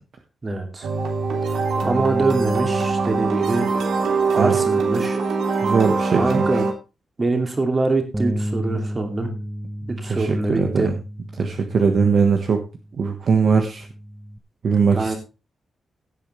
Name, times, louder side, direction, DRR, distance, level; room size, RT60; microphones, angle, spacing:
voice 1, 0.4-0.9 1.8-3.7 4.3-5.2 6.1-6.6 7.2-9.3 9.9-10.9 14.9-15.1, right 3 dB, 25° right, 4 dB, 2.7 m, -24 dB
sound 1, 0.8-6.7, right 4 dB, 80° right, 3.3 m, -22 dB
voice 2, 5.6-6.5 10.0-10.9 11.4-12.6 13.0-13.9 14.6-15.1, right 5 dB, 50° right, 4 dB, 1.4 m, -20 dB
Bass guitar, 8.1-14.4, equal, 10° right, 0.9 m, -33 dB
16.5 x 8.6 x 3.3 m, 0.30 s
wide cardioid pair, 170°, 0 cm